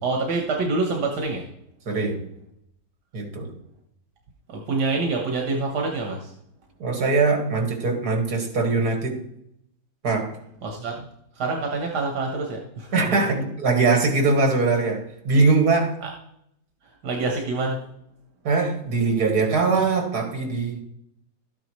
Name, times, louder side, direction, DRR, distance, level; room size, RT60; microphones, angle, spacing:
voice 1, 0.0-1.5 4.5-6.3 10.6-11.1 11.3-13.2 16.0-16.1 16.8-17.8, right 3 dB, 90° right, 0 dB, 1.8 m, -26 dB
voice 2, 1.9-2.2 3.1-3.5 6.8-9.2 10.0-10.3 12.9-15.9 18.4-20.8, right 3 dB, 75° right, 3 dB, 2.4 m, -21 dB
12.5 x 9.3 x 3.1 m, 0.75 s
omnidirectional pair, 1.7 m